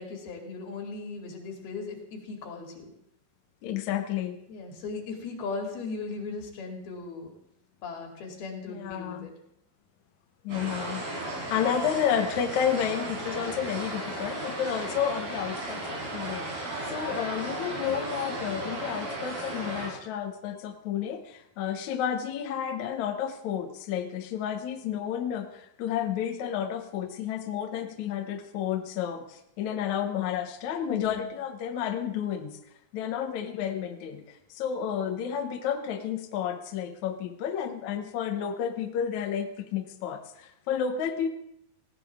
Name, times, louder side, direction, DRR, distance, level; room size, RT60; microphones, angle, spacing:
voice 1, 0.0-2.9 4.5-7.3 7.8-9.3 30.9-31.3, left 4 dB, 80° left, 1 dB, 4.4 m, -38 dB
voice 2, 3.6-4.4 8.7-9.3 10.4-32.6 32.9-41.3, left 8 dB, 65° left, 5 dB, 2.1 m, -31 dB
sound 1, 10.5-19.9, right 2 dB, 80° right, 6.8 m, -35 dB
19.0 x 16.0 x 3.6 m, 0.75 s
omnidirectional pair, 4.3 m